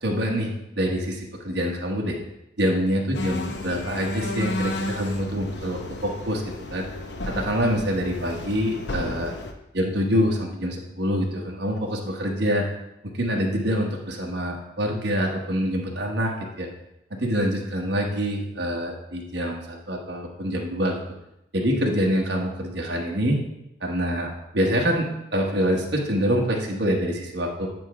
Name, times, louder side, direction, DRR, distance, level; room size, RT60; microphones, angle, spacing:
voice 1, 0.0-2.2 2.6-6.9 7.3-9.3 9.7-12.7 13.0-16.7 17.1-20.9 21.5-23.4 23.8-27.7, equal, 60° right, 0 dB, 1.2 m, -25 dB
sound 1, 3.1-9.5, left 2 dB, 70° left, 0.8 m, -33 dB
9.2 x 3.5 x 4.8 m, 0.86 s
head